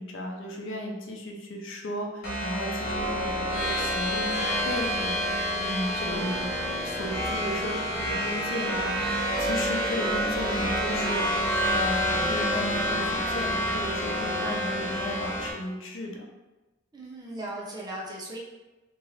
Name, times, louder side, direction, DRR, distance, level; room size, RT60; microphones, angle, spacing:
voice 1, 0.0-6.5 6.8-11.3 11.7-16.3, left 1 dB, 75° left, 0 dB, 0.6 m, -35 dB
sound 1, 2.2-15.5, equal, 50° left, 1.0 m, -28 dB
voice 2, 16.9-18.4, right 1 dB, 20° right, -3 dB, 0.6 m, -37 dB
2.9 x 2.5 x 3.1 m, 1.1 s
head